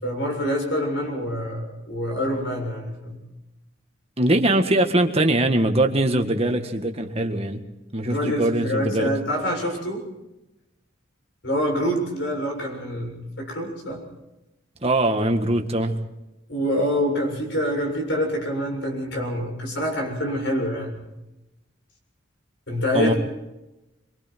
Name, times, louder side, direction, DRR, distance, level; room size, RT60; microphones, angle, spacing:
voice 1, 0.0-3.2 8.0-10.0 11.4-14.0 16.5-21.1 22.7-23.2, equal, 65° left, 7.3 m, -26 dB
voice 2, 4.2-7.6 7.9-9.1 14.8-16.0 22.9-23.1, right 1 dB, 30° right, 1.8 m, -21 dB
27.0 x 24.0 x 4.6 m
head